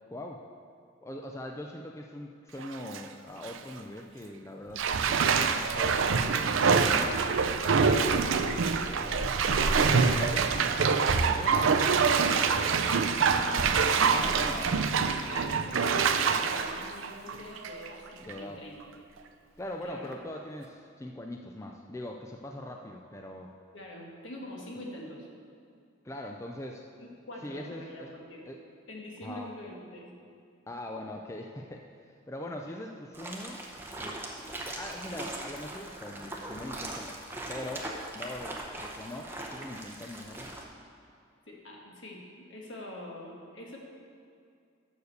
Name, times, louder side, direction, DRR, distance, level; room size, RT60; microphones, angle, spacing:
voice 1, 0.1-0.4 1.0-7.2 7.9-11.6 12.1-12.3 12.7-12.9 14.1-14.8 18.2-18.6 19.6-23.5 26.0-26.8 27.4-28.1 28.5-28.6 29.2-29.5 30.7-33.6 34.0-34.2 34.6-40.5, left 1 dB, 15° left, 2 dB, 0.3 m, -42 dB
Bathtub (filling or washing), 2.6-3.0 3.4-3.6 4.8-17.9 18.3-18.4, right 5 dB, 70° right, 0.5 m, -25 dB
voice 2, 8.3-8.7 12.2-13.2 13.8-14.8 15.3-19.0 19.8-20.1 23.7-25.3 27.0-28.4 28.9-30.1 32.6-32.8 41.5-43.8, left 1 dB, 70° left, -1 dB, 1.5 m, -44 dB
sound 1, 8.3-10.9 11.3-12.1 13.3-15.2 15.5-15.8 16.7-18.1 18.4-18.5 19.2-19.3 20.0-20.7, right 1 dB, 50° right, 0.8 m, -43 dB
sound 2, 33.1-40.6, right 1 dB, 10° right, 0.7 m, -40 dB
7.0 x 6.6 x 6.6 m, 2.4 s
head